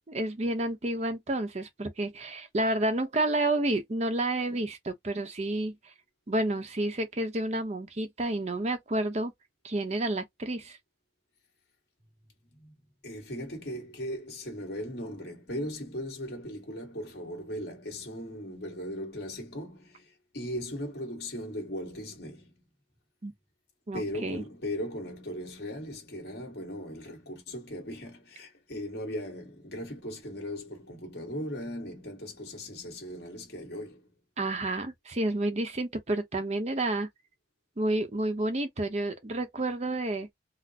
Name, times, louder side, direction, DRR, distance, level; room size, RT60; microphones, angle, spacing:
voice 1, 0.0-5.7 6.3-9.3 9.6-10.8 23.2-23.3 23.9-24.4 34.4-37.1 37.8-40.3, right 1 dB, 35° right, 0.7 m, -30 dB
voice 2, 13.0-22.6 23.9-34.1, equal, 60° left, 1.6 m, -38 dB
3.9 x 2.1 x 2.8 m
head